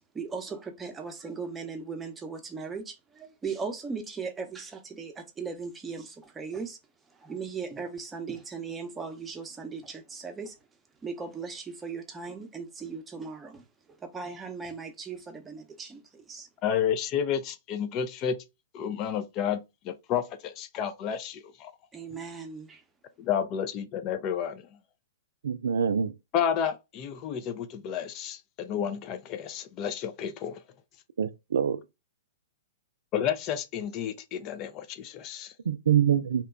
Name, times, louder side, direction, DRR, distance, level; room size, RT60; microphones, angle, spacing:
voice 1, 0.1-6.8 7.1-10.6 11.0-13.6 14.0-16.5 21.9-22.8, right 5 dB, 15° right, 0.7 m, -38 dB
voice 2, 16.6-18.4 18.7-21.7 23.2-24.8 26.3-30.6 33.1-35.5, left 8 dB, 35° left, 0.4 m, -31 dB
voice 3, 25.4-26.1 31.2-31.8 35.7-36.4, right 8 dB, 75° right, 0.3 m, -25 dB
2.9 x 2.2 x 3.6 m
hypercardioid pair, 115°, 0 cm